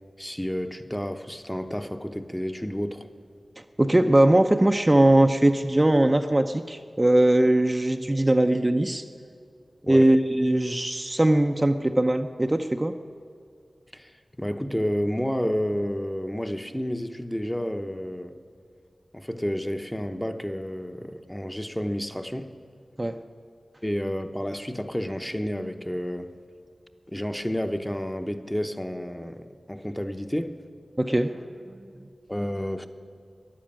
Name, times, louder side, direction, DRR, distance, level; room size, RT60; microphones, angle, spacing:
voice 1, 0.2-3.1 9.9-10.1 13.9-18.4 19.1-22.6 23.8-26.3 27.1-30.6 32.3-32.9, equal, 10° left, 0.8 m, -30 dB
voice 2, 3.6-9.0 9.9-12.9 23.0-23.2 31.0-31.4, right 1 dB, 25° right, 0.6 m, -20 dB
12.5 x 10.5 x 8.8 m
wide cardioid pair, 55°, 0 cm